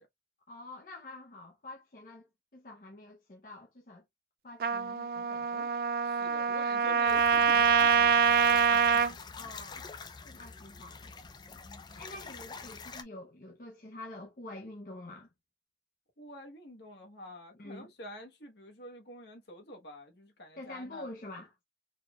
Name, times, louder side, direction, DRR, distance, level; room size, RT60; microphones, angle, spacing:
voice 1, 0.5-2.3 2.5-4.0 4.4-5.8 6.3-6.5 6.9-7.0 8.0-8.2 9.4-9.9 10.2-11.6 12.0-15.3 17.5-17.9 20.6-21.6, left 2 dB, 50° left, 0.7 m, -47 dB
Trumpet, 4.6-9.1, right 6 dB, 50° right, 0.4 m, -25 dB
voice 2, 6.1-8.9 9.4-9.5 10.3-10.4 11.9-12.1 16.2-21.1, left 1 dB, 65° left, 1.2 m, -47 dB
sound 1, 7.1-13.0, left 4 dB, 25° left, 0.4 m, -46 dB
4.1 x 3.2 x 2.3 m
head